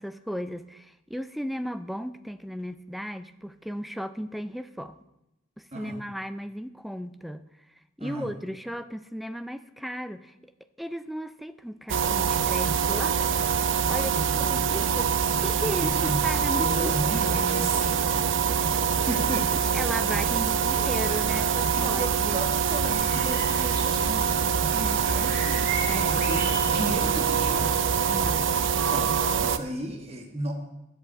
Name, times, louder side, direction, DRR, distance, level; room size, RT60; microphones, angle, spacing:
voice 1, 0.0-5.0 5.6-7.5 8.0-10.5 10.8-13.2 13.9-15.1 15.4-16.9 17.7-17.8 18.1-18.2 18.7-18.8 19.7-22.4 23.2-23.3 25.9-26.3 28.1-28.6, equal, ahead, 11 dB, 0.4 m, -35 dB
voice 2, 5.7-6.0 8.0-8.3 14.2-15.1 15.7-19.6 21.1-21.2 21.7-25.6 25.9-28.0 28.9-30.5, right 1 dB, 30° right, 2 dB, 1.4 m, -35 dB
sound 1, 11.9-29.6, right 7 dB, 65° right, 0.6 m, -25 dB
sound 2, 22.7-28.3, right 2 dB, 50° right, 3.0 m, -36 dB
11.5 x 8.0 x 8.3 m, 0.93 s
head